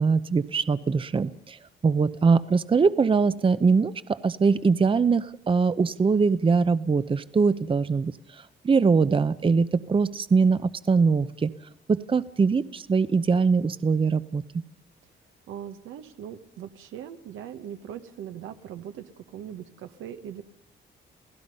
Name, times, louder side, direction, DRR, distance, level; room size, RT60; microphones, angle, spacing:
voice 1, 0.0-1.6 1.8-8.1 8.6-11.5 11.9-14.4, right 5 dB, 25° right, 14 dB, 0.7 m, -22 dB
voice 2, 15.5-20.4, right 9 dB, 85° right, 8 dB, 1.4 m, -40 dB
28.5 x 16.5 x 5.5 m, 0.74 s
cardioid pair, 90°, 20 cm